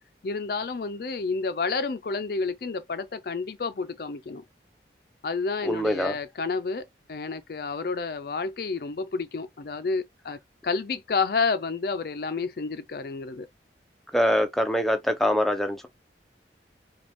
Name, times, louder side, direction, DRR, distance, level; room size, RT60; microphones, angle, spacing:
voice 1, 0.2-4.4 5.2-10.4 10.6-13.5, left 4 dB, 55° left, 0.4 m, -30 dB
voice 2, 5.6-6.1 14.1-15.9, equal, ahead, 0.6 m, -24 dB
5.1 x 2.3 x 3.5 m
head